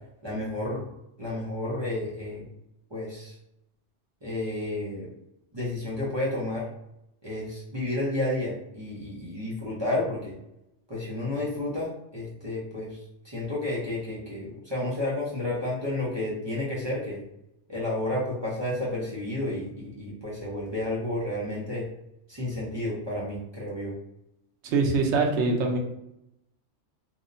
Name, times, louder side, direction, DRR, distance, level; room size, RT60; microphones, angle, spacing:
voice 1, 0.2-0.9 1.2-2.4 2.9-3.3 4.2-5.1 5.5-6.7 7.2-10.3 10.9-13.0 13.2-17.2 17.7-21.9 22.3-23.9, left 1 dB, 35° right, -6 dB, 0.5 m, -31 dB
voice 2, 24.6-25.8, right 3 dB, 75° right, 3 dB, 0.9 m, -23 dB
2.8 x 2.0 x 2.5 m, 0.85 s
omnidirectional pair, 1.2 m